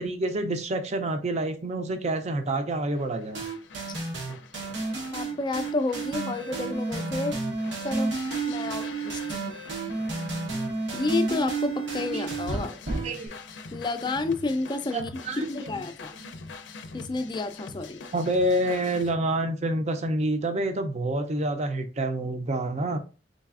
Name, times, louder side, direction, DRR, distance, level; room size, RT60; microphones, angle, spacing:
voice 1, 0.0-3.4 12.1-12.2 12.5-12.6 13.0-13.3 14.9-15.8 16.2-16.4 18.1-23.0, right 1 dB, 40° right, 7 dB, 0.5 m, -28 dB
sound 1, 2.9-19.2, left 4 dB, 80° left, 0.5 m, -45 dB
sound 2, 3.4-13.3, right 3 dB, 90° right, 0.9 m, -31 dB
voice 2, 5.1-7.4 7.8-8.1 8.5-9.6 10.9-12.7 13.7-15.2 15.5-16.1 16.9-18.0, left 3 dB, 25° left, 9 dB, 0.4 m, -30 dB
4.0 x 3.3 x 2.4 m, 0.33 s
head